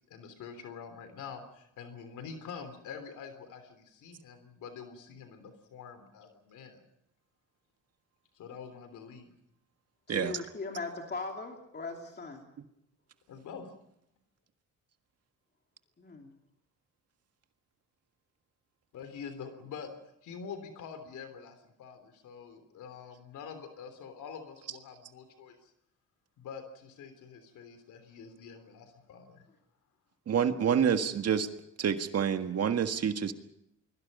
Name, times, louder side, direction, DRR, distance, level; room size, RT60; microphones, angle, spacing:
voice 1, 0.1-6.8 8.3-9.3 13.3-13.7 18.9-19.9 20.2-25.7 26.4-29.5, left 6 dB, 80° left, 9 dB, 3.3 m, -46 dB
voice 2, 10.1-12.5 16.0-16.3, left 3 dB, 35° left, 2 dB, 2.9 m, -39 dB
voice 3, 30.3-31.5 31.8-33.3, right 8 dB, 55° right, 8 dB, 1.7 m, -27 dB
29.5 x 22.0 x 5.4 m, 0.78 s
cardioid pair, 90°, 30 cm